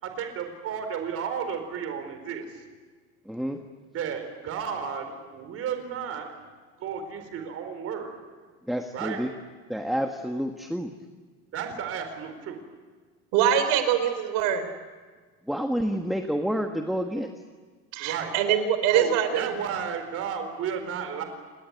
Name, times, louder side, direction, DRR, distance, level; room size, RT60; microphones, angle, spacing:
voice 1, 0.0-2.6 3.9-6.3 6.8-8.2 8.9-9.3 11.5-12.6 18.0-18.3 18.9-21.2, right 7 dB, 50° right, 6 dB, 4.5 m, -33 dB
voice 2, 3.2-3.6 8.7-9.3 9.7-10.9 15.5-17.3, equal, ahead, 4 dB, 1.4 m, -29 dB
voice 3, 13.3-14.6 17.9-19.5, right 9 dB, 90° right, 10 dB, 4.0 m, -23 dB
29.5 x 20.5 x 9.6 m, 1.5 s
cardioid pair, 145°, 31 cm